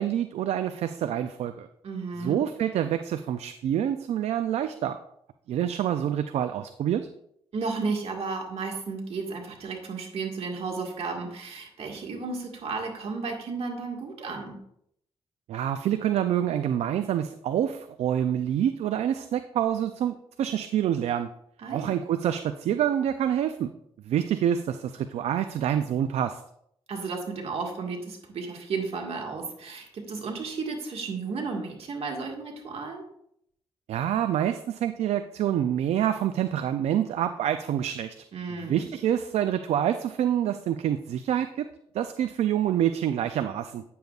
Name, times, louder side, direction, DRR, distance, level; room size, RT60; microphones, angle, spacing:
voice 1, 0.0-1.7 2.2-5.0 5.5-7.1 15.5-21.3 21.7-23.7 24.1-26.4 33.9-38.2 38.7-41.7 41.9-43.8, right 10 dB, 85° right, 9 dB, 0.4 m, -27 dB
voice 2, 1.8-2.4 7.5-14.6 21.6-22.0 26.9-33.0 38.3-38.9, right 4 dB, 70° right, 1 dB, 1.8 m, -33 dB
9.2 x 6.9 x 2.4 m, 0.73 s
cardioid pair, 70°, 11 cm